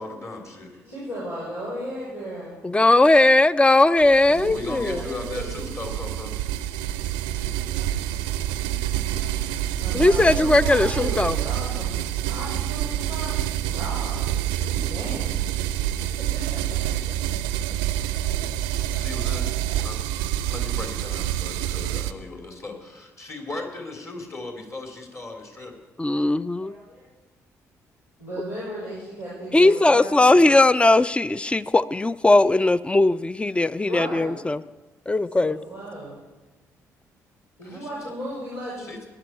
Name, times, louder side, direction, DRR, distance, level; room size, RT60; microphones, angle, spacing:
voice 1, 0.0-0.7 4.5-6.3 14.6-14.7 18.9-19.5 19.8-20.0 20.5-25.7 37.6-37.9 38.8-39.0, left 3 dB, 35° left, 1 dB, 3.4 m, -37 dB
voice 2, 0.8-2.6 4.3-5.6 6.9-8.0 8.6-9.4 9.8-12.0 12.2-14.3 14.6-15.4 16.2-16.6 26.6-27.0 28.2-30.5 33.8-34.4 35.3-36.2 37.6-38.9, equal, 85° left, -10 dB, 5.0 m, -36 dB
voice 3, 2.6-5.0 9.9-11.4 26.0-26.7 29.5-34.6 35.1-35.6, left 2 dB, 15° left, 17 dB, 0.5 m, -18 dB
sound 1, 4.0-22.1, right 12 dB, 70° right, 0.5 m, -27 dB
17.5 x 11.5 x 4.5 m, 1.2 s
figure-of-eight pair, 45°, 8 cm